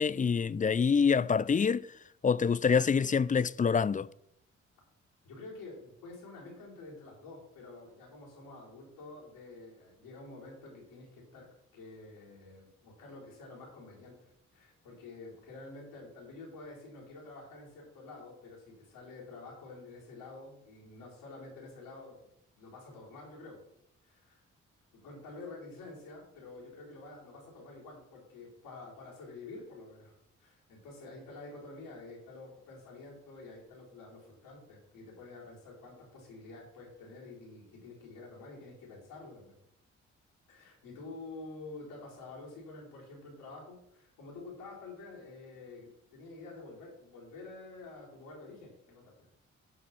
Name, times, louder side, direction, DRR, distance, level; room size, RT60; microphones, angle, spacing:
voice 1, 0.0-1.9 2.2-4.1, left 6 dB, 25° left, 0.4 m, -26 dB
voice 2, 5.2-11.5 11.7-22.2 22.6-23.6 24.0-24.4 24.9-39.5 40.5-49.3, left 3 dB, 85° left, 4.0 m, -49 dB
11.5 x 4.9 x 5.9 m
hypercardioid pair, 40°, 33 cm